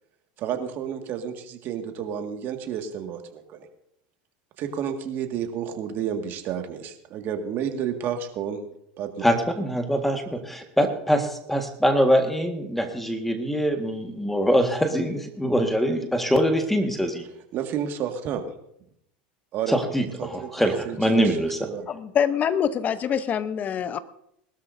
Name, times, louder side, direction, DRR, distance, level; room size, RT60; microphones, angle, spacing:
voice 1, 0.4-3.7 4.6-8.6 9.0-9.2 17.5-18.4 19.5-19.8 20.2-21.4 21.6-21.9, right 8 dB, 50° right, 5 dB, 1.9 m, -31 dB
voice 2, 9.2-17.2 19.7-21.6, equal, 5° left, 5 dB, 1.7 m, -23 dB
voice 3, 21.9-24.0, left 8 dB, 35° left, 14 dB, 0.8 m, -25 dB
21.0 x 13.0 x 2.7 m, 0.75 s
supercardioid pair, 105°, 5 cm